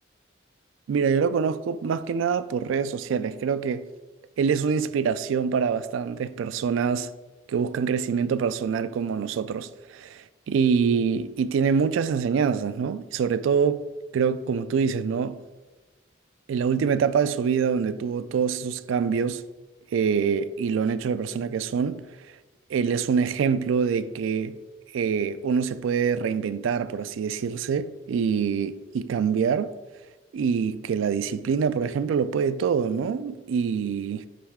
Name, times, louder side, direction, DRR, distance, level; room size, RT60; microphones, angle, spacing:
voice 1, 0.9-3.9 4.4-7.1 7.5-13.9 14.1-15.4 16.5-19.4 19.9-22.1 22.7-24.6 24.9-29.7 30.3-34.3, right 6 dB, 85° right, 0.3 m, -25 dB
9.3 x 3.1 x 3.5 m
head